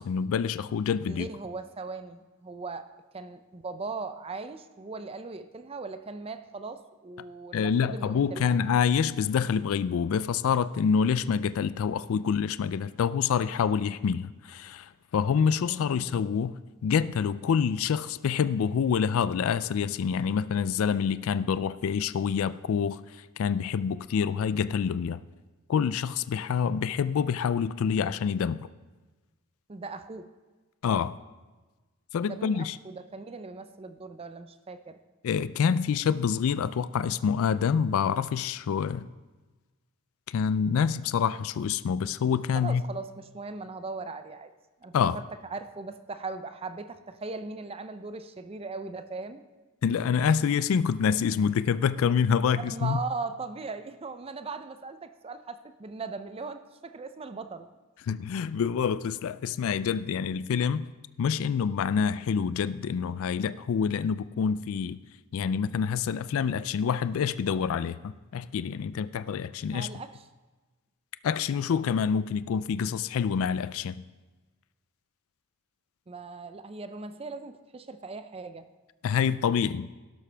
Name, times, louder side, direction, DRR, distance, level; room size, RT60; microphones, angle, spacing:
voice 1, 0.0-1.3 7.5-23.0 23.4-25.2 25.7-28.7 30.8-31.2 32.1-32.8 35.2-39.1 40.3-42.8 44.9-45.2 49.8-53.0 58.1-60.8 61.2-65.0 65.3-69.9 71.2-74.0 79.0-79.9, left 7 dB, 65° left, 16 dB, 0.3 m, -27 dB
voice 2, 1.1-8.6 15.7-16.2 29.7-30.3 32.2-35.0 42.5-44.5 44.8-49.4 52.6-57.7 69.7-70.2 76.1-78.7, right 4 dB, 25° right, 11 dB, 0.5 m, -39 dB
12.0 x 11.5 x 3.4 m, 1.2 s
head